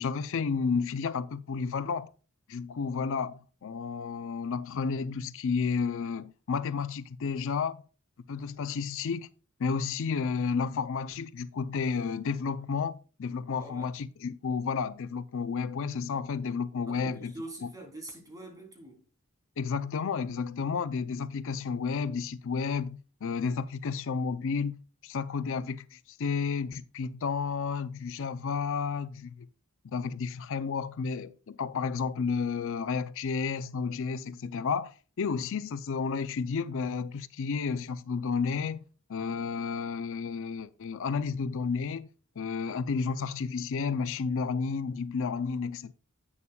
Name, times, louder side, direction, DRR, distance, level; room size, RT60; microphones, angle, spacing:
voice 1, 0.0-2.1 2.5-7.8 8.3-9.3 9.6-17.3 19.6-29.5 29.8-38.8 39.1-42.1 42.4-45.9, left 5 dB, 65° left, 0.4 m, -32 dB
voice 2, 13.5-13.9 16.9-19.0, right 2 dB, 15° right, 3.2 m, -44 dB
11.0 x 8.5 x 2.3 m
head